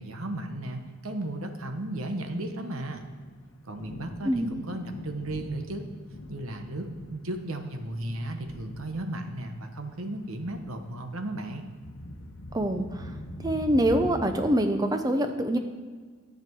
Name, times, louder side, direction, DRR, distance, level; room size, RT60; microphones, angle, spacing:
voice 1, 0.0-3.0 3.7-5.9 6.3-11.6, right 1 dB, 75° right, 6 dB, 1.0 m, -35 dB
Thunder, 0.8-14.5, left 1 dB, 70° left, 0.9 m, -44 dB
voice 2, 12.5-13.1 13.4-15.6, right 1 dB, 15° right, 7 dB, 0.6 m, -25 dB
11.0 x 7.7 x 4.6 m, 1.6 s
head